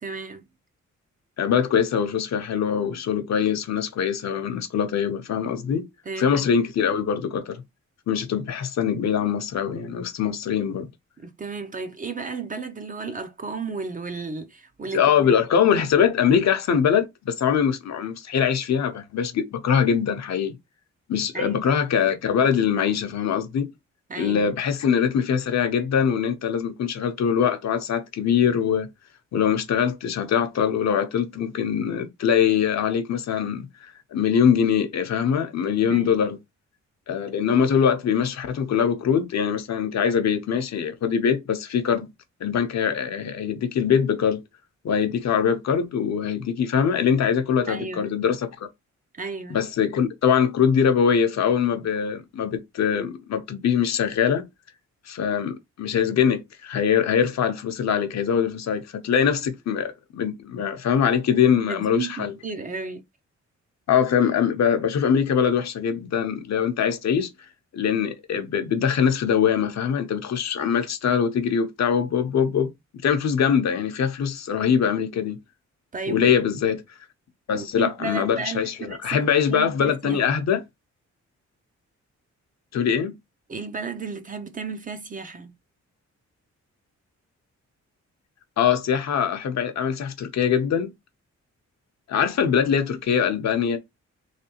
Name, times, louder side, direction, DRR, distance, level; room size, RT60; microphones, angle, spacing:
voice 1, 0.0-0.4 6.1-6.5 11.2-15.3 21.3-21.7 24.1-24.5 35.9-36.1 47.7-48.1 49.1-49.6 61.6-63.0 75.9-76.4 77.5-79.2 79.5-80.2 83.5-85.5, right 4 dB, 30° right, 0.5 m, -33 dB
voice 2, 1.4-5.8 6.2-7.6 8.1-10.9 14.9-20.6 21.1-23.7 24.2-28.9 29.3-36.4 37.1-42.1 42.4-44.4 44.8-48.5 49.5-54.4 55.1-62.3 63.9-67.3 67.7-72.7 73.0-75.4 76.1-76.8 77.5-80.6 82.7-83.2 88.6-90.9 92.1-93.8, left 7 dB, 65° left, 0.7 m, -23 dB
3.3 x 3.1 x 2.9 m
wide cardioid pair, 140°, 29 cm